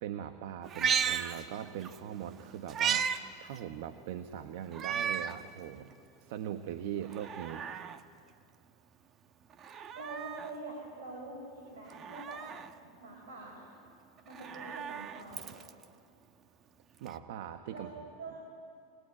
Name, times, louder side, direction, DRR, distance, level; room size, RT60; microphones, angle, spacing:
voice 1, 0.0-3.1 3.4-5.9 6.2-7.6 17.0-17.9, right 10 dB, 65° right, 9 dB, 1.1 m, -40 dB
Meow, 0.6-2.0 2.3-3.2 3.6-3.7 4.7-5.4 5.9-6.0 7.0-8.0 9.5-10.5 11.9-12.7 14.2-15.8 17.1-17.2, right 7 dB, 35° right, 1.1 m, -35 dB
voice 2, 10.0-12.5 13.0-13.7 14.2-15.5 17.7-17.9 18.2-18.4, right 2 dB, 80° right, -1 dB, 5.9 m, -45 dB
22.5 x 20.0 x 9.8 m, 2.3 s
hypercardioid pair, 115°, 0 cm